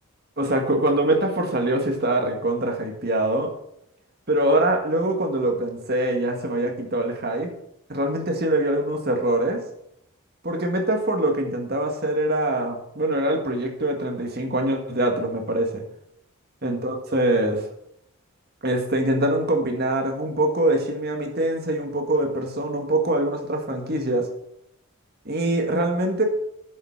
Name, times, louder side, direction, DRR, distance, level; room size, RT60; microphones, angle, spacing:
voice 1, 0.4-3.5 4.3-7.5 7.9-9.6 10.4-15.8 16.6-17.6 18.6-24.3 25.3-26.2, right 1 dB, 45° right, 3 dB, 1.8 m, -23 dB
7.8 x 7.4 x 7.3 m, 0.76 s
head